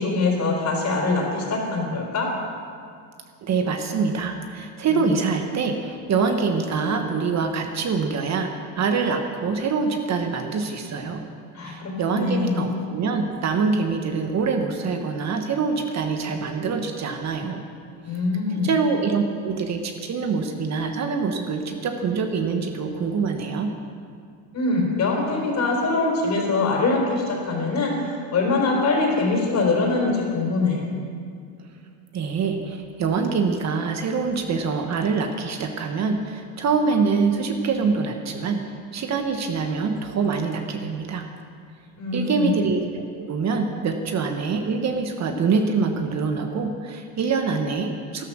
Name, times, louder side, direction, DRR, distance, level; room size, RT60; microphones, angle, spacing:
voice 1, 0.0-2.3 4.9-5.1 11.5-12.6 18.0-18.7 24.5-27.9 28.3-30.8 42.0-42.5, left 3 dB, 45° left, 0 dB, 4.1 m, -23 dB
voice 2, 3.4-11.2 11.6-17.6 18.6-23.7 32.1-38.6 38.9-41.3 42.1-48.2, right 5 dB, 40° right, 5 dB, 1.3 m, -25 dB
13.0 x 12.0 x 6.2 m, 2.2 s
cardioid pair, 115°, 39 cm